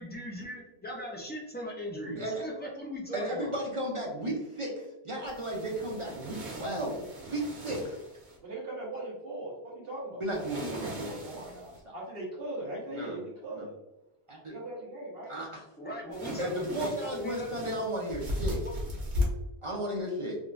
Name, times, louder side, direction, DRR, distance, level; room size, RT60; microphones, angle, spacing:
voice 1, 0.0-3.5 15.8-17.5 19.1-19.3, equal, 15° left, -2 dB, 0.4 m, -39 dB
voice 2, 2.1-2.4 3.1-8.0 10.2-11.9 12.9-13.2 13.5-13.6 14.3-14.5 15.3-15.6 16.4-18.6 19.6-20.4, right 1 dB, 40° right, -2 dB, 0.5 m, -34 dB
sound 1, 5.3-8.4 10.3-11.8 16.1-19.2, left 1 dB, 85° right, 1.2 m, -37 dB
voice 3, 8.4-10.2 11.9-13.7 14.5-15.3, right 1 dB, 60° right, -4 dB, 1.2 m, -39 dB
3.6 x 2.3 x 2.5 m, 0.99 s
omnidirectional pair, 1.1 m